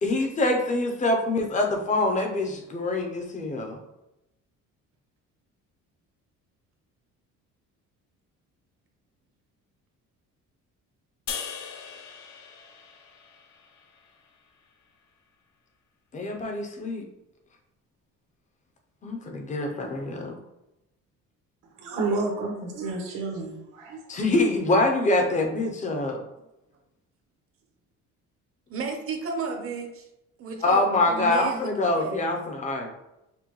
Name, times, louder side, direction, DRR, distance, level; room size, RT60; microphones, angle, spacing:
voice 1, 0.0-3.8 16.1-17.0 19.0-20.4 24.1-26.2 30.6-32.9, left 2 dB, 25° left, 3 dB, 0.6 m, -25 dB
sound 1, 11.3-14.6, left 7 dB, 65° left, 0.7 m, -40 dB
voice 2, 21.8-24.0, right 3 dB, 90° right, 0 dB, 1.2 m, -30 dB
voice 3, 28.7-30.0 30.4-31.7 32.0-32.2, right 4 dB, 45° right, 3 dB, 0.7 m, -33 dB
6.0 x 2.2 x 3.0 m, 0.90 s
cardioid pair, 160°, 30 cm